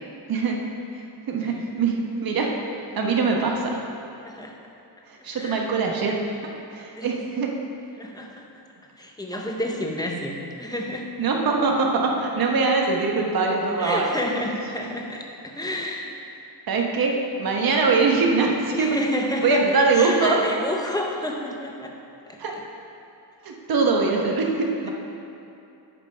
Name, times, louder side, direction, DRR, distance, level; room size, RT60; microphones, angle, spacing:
voice 1, 0.3-0.6 0.9-2.5 2.9-3.8 5.1-6.2 6.7-7.5 11.2-14.1 16.7-19.0 19.4-20.4 22.4-22.5 23.4-24.9, right 4 dB, 55° right, 1 dB, 1.1 m, -22 dB
voice 2, 4.2-4.6 5.3-5.6 6.9-7.1 8.0-8.4 9.0-11.1 13.8-16.2 18.7-19.6 19.9-22.0 22.3-22.4, left 1 dB, 10° left, 0 dB, 0.7 m, -30 dB
8.7 x 5.5 x 5.6 m, 2.7 s
wide cardioid pair, 170°, 42 cm